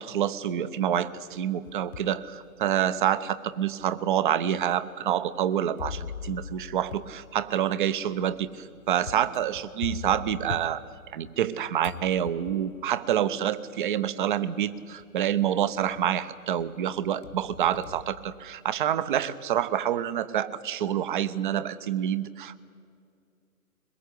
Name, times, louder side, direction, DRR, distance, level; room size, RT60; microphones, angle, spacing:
voice 1, 0.0-10.8 11.1-22.6, right 10 dB, 35° right, 16 dB, 0.9 m, -27 dB
sound 1, 1.3-2.2 2.8-2.9 3.8-3.9 5.8-11.5 11.8-12.8 14.0-14.1 14.6-15.0 15.4-16.2 16.6-18.9, left 7 dB, 60° left, 1.2 m, -42 dB
22.5 x 21.0 x 8.4 m, 2.4 s
figure-of-eight pair, 135°, 43 cm